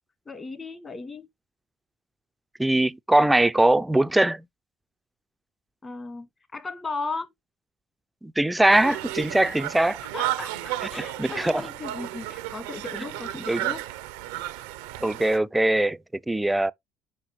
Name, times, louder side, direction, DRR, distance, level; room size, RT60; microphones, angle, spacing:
voice 1, 0.2-1.3 5.8-7.3 10.1-13.8, left 3 dB, 30° left, 1.7 m, -36 dB
voice 2, 2.6-4.4 8.2-10.0 11.0-11.6 13.5-13.6 15.0-16.0 16.3-16.7, right 1 dB, 10° right, 0.4 m, -21 dB
Conversation, 8.7-15.4, right 14 dB, 85° right, 0.6 m, -33 dB
5.7 x 5.6 x 3.1 m
hypercardioid pair, 70°, 0 cm